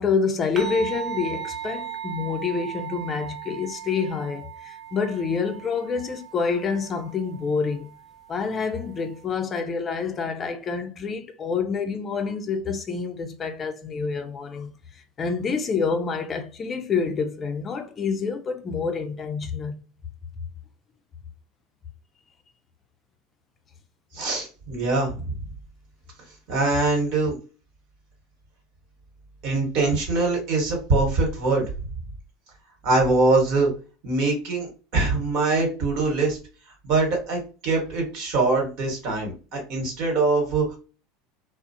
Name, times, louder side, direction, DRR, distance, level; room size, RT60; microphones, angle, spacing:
voice 1, 0.0-7.9 8.3-14.7 15.2-19.8, left 5 dB, 30° left, 0.4 m, -27 dB
sound 1, 0.6-9.2, right 9 dB, 30° right, 0.5 m, -37 dB
voice 2, 24.1-25.3 26.5-27.4 29.4-31.6 32.8-33.7 34.0-36.4 36.8-40.8, right 3 dB, 60° right, 1.3 m, -23 dB
2.4 x 2.0 x 2.6 m
hypercardioid pair, 80°, 0 cm